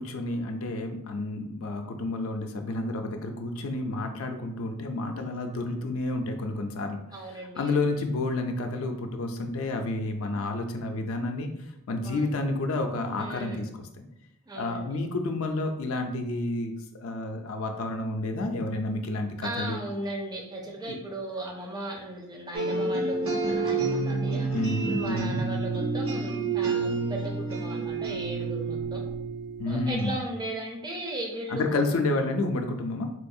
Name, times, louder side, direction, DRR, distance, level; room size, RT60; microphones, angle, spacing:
voice 1, 0.0-7.0 7.3-11.5 11.9-13.9 14.6-16.7 17.0-19.8 20.9-21.0 24.5-25.4 29.6-30.2 31.5-33.1, left 2 dB, 60° left, 4 dB, 0.4 m, -30 dB
voice 2, 7.1-7.9 12.0-12.3 13.2-13.7 14.5-15.0 19.4-24.5 24.9-29.1 29.7-31.9, right 1 dB, 20° right, 0 dB, 0.4 m, -37 dB
sound 1, 22.5-30.1, right 3 dB, 70° right, 0.7 m, -29 dB
4.2 x 2.3 x 2.6 m, 0.86 s
head